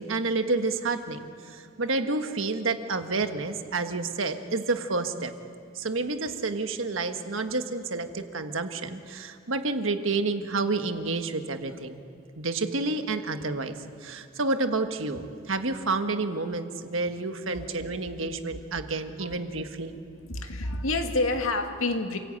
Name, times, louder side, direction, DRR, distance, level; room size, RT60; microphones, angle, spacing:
voice 1, 0.0-5.3 5.7-12.0 12.4-13.7 14.0-19.9, right 3 dB, 70° right, 7 dB, 1.5 m, -29 dB
voice 2, 19.9-22.2, left 2 dB, 90° left, 4 dB, 2.2 m, -29 dB
28.5 x 16.5 x 8.8 m, 2.4 s
head